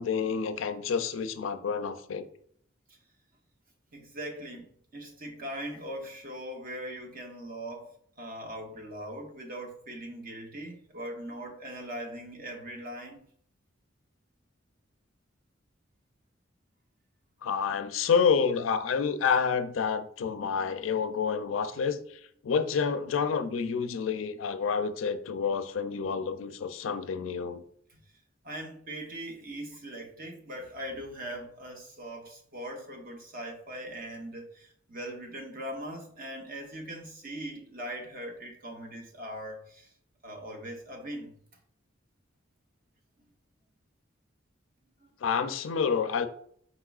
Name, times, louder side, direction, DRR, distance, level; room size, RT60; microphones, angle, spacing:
voice 1, 0.0-2.3 17.4-27.6 45.2-46.3, left 6 dB, 80° left, 0.4 m, -29 dB
voice 2, 3.9-13.3 28.4-39.9 40.2-41.4 45.0-45.1, right 1 dB, 45° right, 0.9 m, -40 dB
4.6 x 4.1 x 2.4 m
head